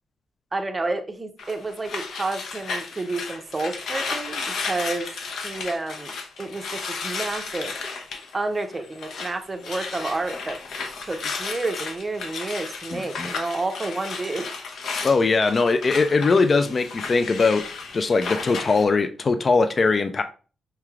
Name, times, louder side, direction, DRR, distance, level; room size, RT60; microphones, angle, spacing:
voice 1, 0.5-5.1 5.4-6.1 6.4-7.7 8.3-10.6 11.0-14.5, right 2 dB, 20° right, 0.5 m, -30 dB
sound 1, 1.4-9.4 9.6-18.8, left 4 dB, 70° left, 0.7 m, -33 dB
voice 2, 12.9-13.3 15.0-20.2, left 4 dB, 35° left, 0.3 m, -21 dB
5.7 x 3.1 x 2.4 m
cardioid pair, 135°, 0 cm